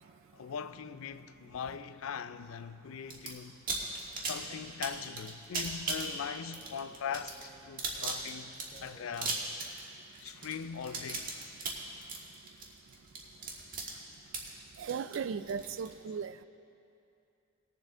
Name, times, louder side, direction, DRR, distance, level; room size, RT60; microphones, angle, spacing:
voice 1, 0.3-3.6 4.2-8.5 8.8-9.4 10.2-11.3, left 7 dB, 85° left, 0.4 m, -40 dB
sound 1, 3.1-3.3 3.7-15.9, right 4 dB, 45° right, 1.4 m, -37 dB
sound 2, 4.1-9.5, left 1 dB, 25° left, 2.6 m, -58 dB
voice 2, 14.8-16.4, right 6 dB, 70° right, 0.3 m, -36 dB
19.5 x 7.2 x 3.7 m
head